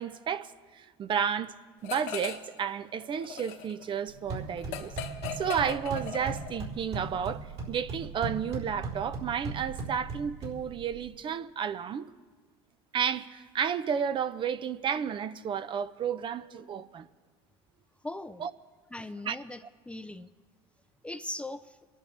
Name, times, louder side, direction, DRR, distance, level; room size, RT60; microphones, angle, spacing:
voice 1, 0.0-1.5 1.8-4.9 5.3-12.1 12.9-17.1 18.4-18.5 19.3-19.4, right 7 dB, 40° right, 0.6 m, -32 dB
sound 1, 1.8-2.6 2.9-6.7, left 7 dB, 75° left, 1.5 m, -39 dB
sound 2, 4.1-11.1, right 3 dB, 60° right, 3.9 m, -38 dB
voice 2, 18.0-18.5 18.9-20.3 21.0-21.8, left 2 dB, 10° left, 0.5 m, -39 dB
25.5 x 11.0 x 3.4 m
supercardioid pair, 85°, 13 cm